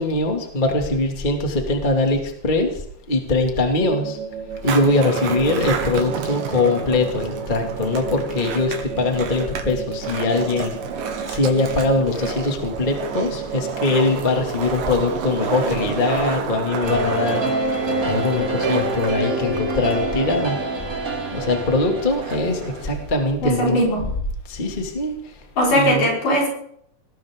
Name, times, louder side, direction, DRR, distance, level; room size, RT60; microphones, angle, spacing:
voice 1, 0.0-2.8 3.1-4.2 4.6-20.6 21.3-23.8 24.5-25.4 25.7-26.0, left 2 dB, 15° left, 2 dB, 2.0 m, -22 dB
sound 1, 3.8-14.1, right 7 dB, 40° right, 3.7 m, -33 dB
Skateboard, 4.5-23.2, right 6 dB, 80° right, 3.4 m, -31 dB
sound 2, 16.8-23.1, right 2 dB, 25° right, 3.4 m, -26 dB
voice 2, 23.4-24.0 25.6-26.5, equal, 70° left, -2 dB, 6.7 m, -19 dB
20.0 x 17.5 x 3.8 m, 0.69 s
omnidirectional pair, 3.9 m